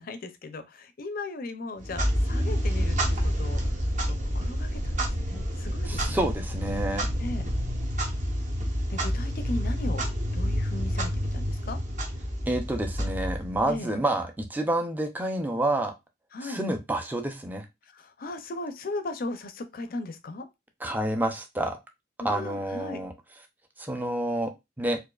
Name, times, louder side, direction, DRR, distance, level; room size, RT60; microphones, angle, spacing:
voice 1, 0.0-6.3 7.2-7.5 8.9-11.8 13.7-13.9 16.3-16.6 17.8-20.5 22.2-23.0, left 2 dB, 50° left, 0.5 m, -37 dB
Clock, 1.8-13.7, equal, 40° right, 0.8 m, -29 dB
sound 1, 2.8-7.8, right 1 dB, 85° right, 0.7 m, -36 dB
voice 2, 5.9-7.1 12.5-15.9 16.4-17.7 20.8-21.8 22.2-23.1 23.8-25.0, right 1 dB, 10° right, 0.4 m, -29 dB
4.5 x 2.4 x 2.3 m
head